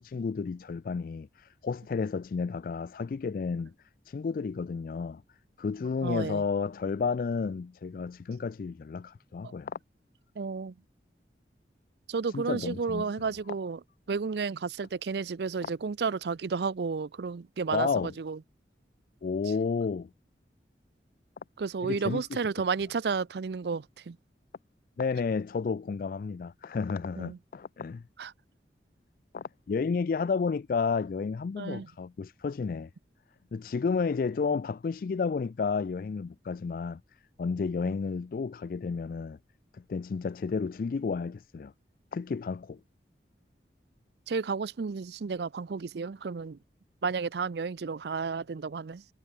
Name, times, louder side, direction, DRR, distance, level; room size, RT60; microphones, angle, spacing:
voice 1, 0.0-3.7 4.1-5.2 5.6-9.8 12.3-13.1 15.6-15.7 17.7-18.1 19.2-20.1 21.8-22.4 25.0-28.0 29.3-32.9 33.5-37.0 37.4-39.4 39.7-41.7 42.1-42.8, left 5 dB, 50° left, 0.3 m, -31 dB
voice 2, 6.0-6.4 9.4-9.5 10.4-10.7 12.1-13.8 14.1-18.4 21.6-24.2 27.2-27.4 28.2-28.3 31.6-31.9 37.8-37.9 44.3-46.6 47.0-49.0, right 5 dB, 70° right, 0.5 m, -32 dB
head